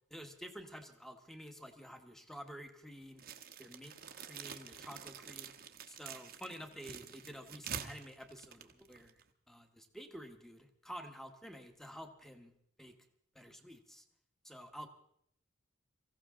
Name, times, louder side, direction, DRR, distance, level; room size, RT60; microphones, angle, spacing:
voice 1, 0.1-3.2 3.6-5.5 5.9-9.2 9.5-12.5 12.8-13.0 13.3-14.0 14.4-14.9, equal, ahead, 6 dB, 1.4 m, -50 dB
sound 1, 3.2-9.3, right 7 dB, 50° right, 1.1 m, -47 dB
23.5 x 15.5 x 3.7 m, 0.70 s
head